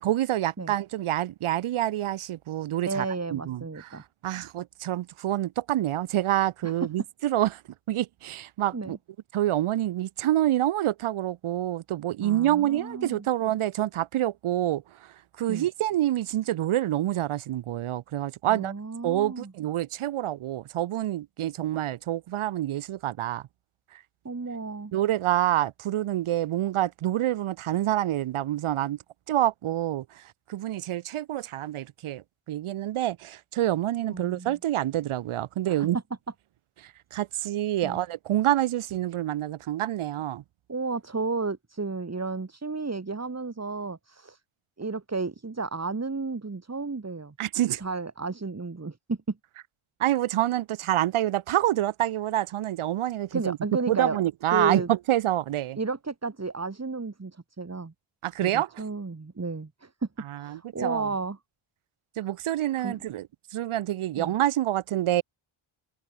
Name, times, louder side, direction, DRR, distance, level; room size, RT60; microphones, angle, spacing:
voice 1, 0.0-3.0 3.3-7.6 7.9-9.0 9.3-18.7 19.0-23.4 23.9-24.0 24.9-29.0 29.3-30.2 30.5-36.0 36.8-40.4 47.4-47.8 50.0-53.6 53.9-55.8 58.2-58.7 60.3-61.1 62.2-63.3 63.5-65.2, right 13 dB, 75° right, 0.9 m, -27 dB
voice 2, 2.9-4.0 6.6-6.9 8.7-9.0 12.2-13.3 15.5-15.7 18.5-19.5 24.2-24.9 34.1-34.6 35.7-35.9 37.8-38.0 40.7-44.4 44.8-49.4 53.3-54.2 54.5-54.9 55.8-57.9 58.4-60.1 60.4-61.4 62.8-63.0 64.2-64.3, right 4 dB, 30° right, 4.6 m, -33 dB
cardioid pair, 65°, 50 cm